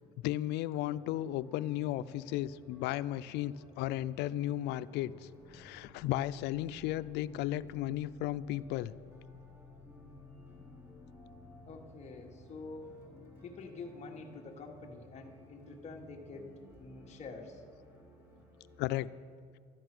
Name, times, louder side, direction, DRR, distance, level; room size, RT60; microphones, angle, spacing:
voice 1, 0.2-5.1 5.5-8.9 18.8-19.1, left 14 dB, 90° left, 16 dB, 0.4 m, -34 dB
sound 1, 0.8-19.0, left 2 dB, 15° right, 3.6 m, -55 dB
voice 2, 11.7-12.9 13.4-16.5 16.8-17.6, left 3 dB, 40° left, 1 dB, 1.5 m, -47 dB
12.0 x 10.0 x 6.1 m, 2.2 s
cardioid pair, 110°, 17 cm